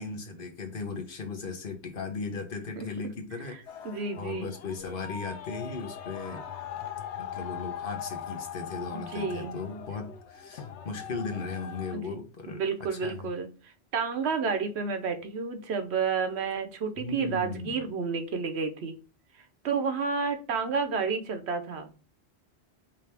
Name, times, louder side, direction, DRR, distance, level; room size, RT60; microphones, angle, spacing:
voice 1, 0.0-3.9 4.2-6.4 7.2-12.6 13.0-13.3 17.0-17.8, left 4 dB, 55° left, 4 dB, 1.1 m, -37 dB
sound 1, 3.7-11.9, left 8 dB, 85° left, 0.9 m, -40 dB
voice 2, 3.8-4.5 8.9-9.6 11.9-12.2 12.5-19.0 19.6-21.9, right 5 dB, 75° right, 7 dB, 1.0 m, -30 dB
5.1 x 2.8 x 3.3 m, 0.33 s
omnidirectional pair, 1.1 m